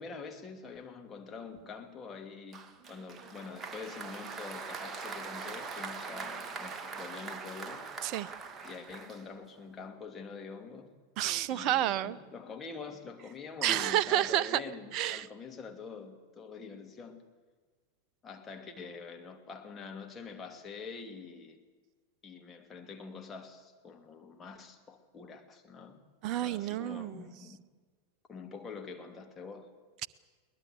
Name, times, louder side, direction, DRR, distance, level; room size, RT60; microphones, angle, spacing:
voice 1, 0.0-7.9 8.6-10.9 11.5-17.2 18.2-21.6 22.2-26.0 26.4-27.6 28.3-29.7, left 5 dB, 20° left, 2.8 m, -45 dB
Applause, 2.5-9.6, right 4 dB, 20° right, 1.8 m, -42 dB
voice 2, 11.2-12.2 13.6-14.6 14.9-15.3 26.2-27.2, right 13 dB, 40° right, 0.7 m, -30 dB
22.5 x 20.0 x 8.2 m
figure-of-eight pair, 90°, 0 cm